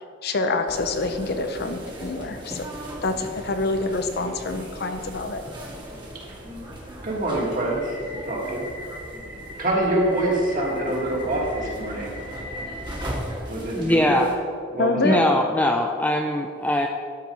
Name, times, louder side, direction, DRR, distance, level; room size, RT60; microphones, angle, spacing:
voice 1, 0.2-2.7 3.0-5.4 14.8-15.2, left 3 dB, 55° left, 7 dB, 0.7 m, -26 dB
sound 1, 0.7-14.4, equal, 25° right, 1.5 m, -37 dB
voice 2, 7.0-8.7 9.6-12.2 13.5-14.2 14.7-15.2, right 1 dB, 45° right, -2 dB, 1.9 m, -25 dB
voice 3, 13.7-14.3 15.0-16.9, left 1 dB, 10° left, 3 dB, 0.4 m, -21 dB
12.0 x 4.5 x 5.4 m, 2.2 s
head